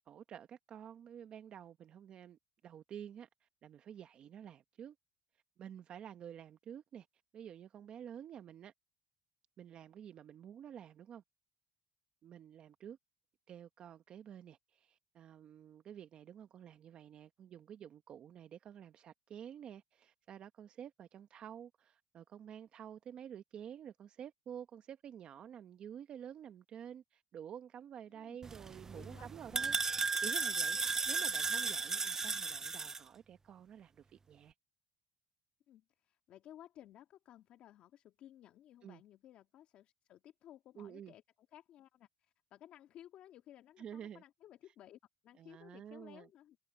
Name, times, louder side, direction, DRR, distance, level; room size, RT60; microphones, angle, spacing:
voice 1, 0.1-4.9 5.6-7.1 7.3-8.7 9.6-11.2 12.2-13.0 13.5-29.8 30.2-34.5 38.8-39.0 40.8-41.1 43.8-44.2 45.4-46.3, right 9 dB, 50° right, 1.0 m, -50 dB
sound 1, 28.4-33.0, right 4 dB, 20° right, 0.4 m, -35 dB
voice 2, 28.9-29.8 35.7-41.2 41.5-46.6, left 12 dB, 65° left, 1.9 m, -58 dB
cardioid pair, 105°, 2 cm